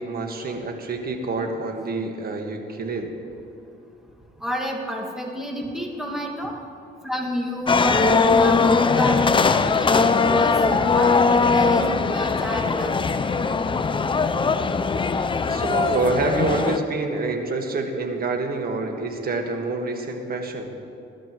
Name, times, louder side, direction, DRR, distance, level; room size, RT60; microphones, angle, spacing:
voice 1, 0.0-3.1 15.4-20.7, right 3 dB, 50° right, 4 dB, 1.6 m, -27 dB
voice 2, 4.4-6.5 7.0-12.9, equal, ahead, 0 dB, 1.9 m, -29 dB
sound 1, 7.7-16.8, left 4 dB, 25° left, 0.5 m, -20 dB
20.5 x 12.5 x 3.1 m, 2.7 s
cardioid pair, 90°, 20 cm